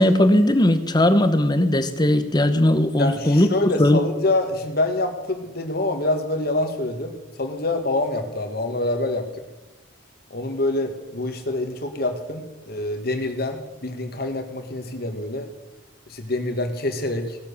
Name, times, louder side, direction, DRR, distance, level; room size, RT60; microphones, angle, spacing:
voice 1, 0.0-4.0, left 1 dB, 20° left, 10 dB, 0.9 m, -18 dB
voice 2, 3.0-9.4 10.3-15.5 16.1-17.4, left 2 dB, 50° left, 6 dB, 1.8 m, -26 dB
18.0 x 7.4 x 7.0 m, 1.2 s
head